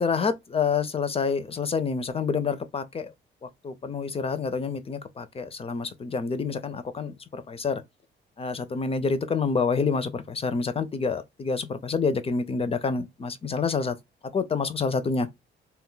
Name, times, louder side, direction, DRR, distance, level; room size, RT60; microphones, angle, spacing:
voice 1, 0.0-3.1 3.4-7.8 8.4-14.0 14.3-15.3, left 5 dB, 30° left, 0.4 m, -28 dB
2.2 x 2.1 x 3.7 m
cardioid pair, 90°, 20 cm